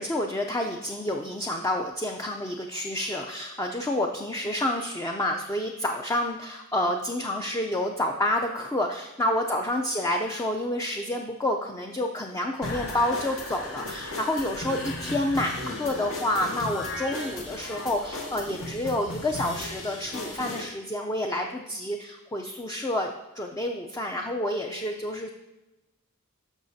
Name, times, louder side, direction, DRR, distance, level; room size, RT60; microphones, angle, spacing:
voice 1, 0.0-23.1 23.3-25.3, left 1 dB, 15° left, 2 dB, 0.5 m, -29 dB
sound 1, 12.6-20.6, left 2 dB, 75° left, 1.9 m, -36 dB
13.0 x 5.7 x 2.7 m, 1.0 s
head